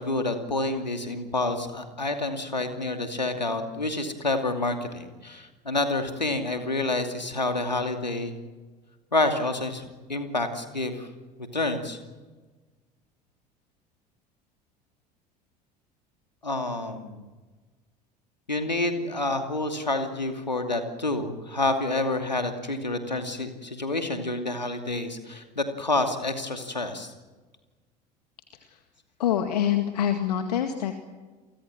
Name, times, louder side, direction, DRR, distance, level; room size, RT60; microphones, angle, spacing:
voice 1, 0.0-8.3 9.1-9.8 10.1-11.1 11.5-12.0 16.4-17.2 18.5-27.1, left 2 dB, 85° left, 6 dB, 2.6 m, -28 dB
voice 2, 29.2-31.1, left 10 dB, 65° left, 7 dB, 2.0 m, -25 dB
29.5 x 23.5 x 7.6 m, 1.3 s
figure-of-eight pair, 65°, 21 cm